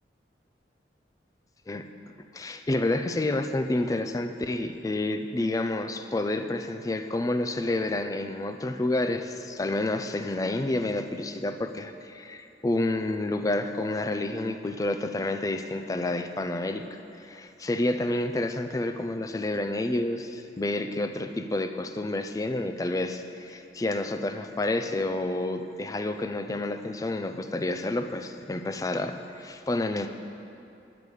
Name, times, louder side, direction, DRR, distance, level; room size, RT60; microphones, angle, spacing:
voice 1, 2.3-30.1, left 2 dB, 20° left, 8 dB, 0.3 m, -29 dB
9.2 x 6.9 x 4.8 m, 2.7 s
head